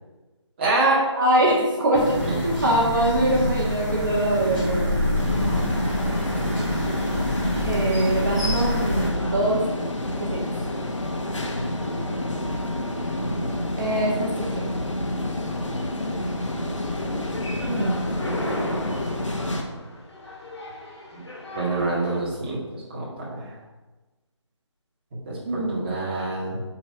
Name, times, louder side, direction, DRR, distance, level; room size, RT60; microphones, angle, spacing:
voice 1, 0.6-1.0 2.2-2.4 6.1-6.2 13.2-13.4 21.5-23.6 25.3-26.6, right 2 dB, 20° right, -7 dB, 1.9 m, -26 dB
voice 2, 1.2-4.9 7.6-9.6 10.2-10.4 13.8-14.7 17.7-18.0 18.4-18.8 25.5-25.9, right 1 dB, 40° right, -3 dB, 1.8 m, -23 dB
sound 1, 1.9-9.1, left 1 dB, 5° left, 2.5 m, -26 dB
sound 2, 5.2-19.6, left 1 dB, 80° left, 1.5 m, -28 dB
sound 3, 16.9-22.2, left 1 dB, 60° left, 2.5 m, -36 dB
8.8 x 4.7 x 4.7 m, 1.2 s
figure-of-eight pair, 165°, 16 cm